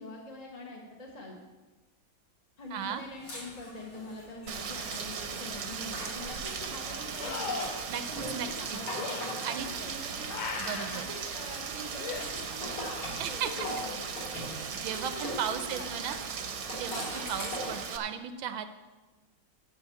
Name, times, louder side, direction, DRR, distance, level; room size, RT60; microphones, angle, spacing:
voice 1, 0.0-1.4 2.6-7.6 8.2-10.3 10.8-13.9 14.9-16.1 16.9-17.3, left 1 dB, 25° left, -1 dB, 1.2 m, -44 dB
voice 2, 2.7-3.0 7.9-8.8 9.4-9.7 10.6-11.0 13.2-13.7 14.3-14.4 14.7-16.2 16.7-18.7, right 8 dB, 80° right, 10 dB, 1.4 m, -36 dB
sound 1, 2.8-6.5 6.9-11.0 11.5-15.5 16.5-17.9, left 1 dB, 85° left, 4.5 m, -43 dB
Rain, 4.5-18.0, right 6 dB, 55° right, 1.2 m, -38 dB
sound 2, 5.6-5.7 7.2-7.9 9.0-9.2 10.3-11.0 12.0-12.3 13.4-14.1 17.3-17.4, left 5 dB, 60° left, 1.4 m, -37 dB
11.5 x 5.4 x 8.3 m, 1.2 s
omnidirectional pair, 2.2 m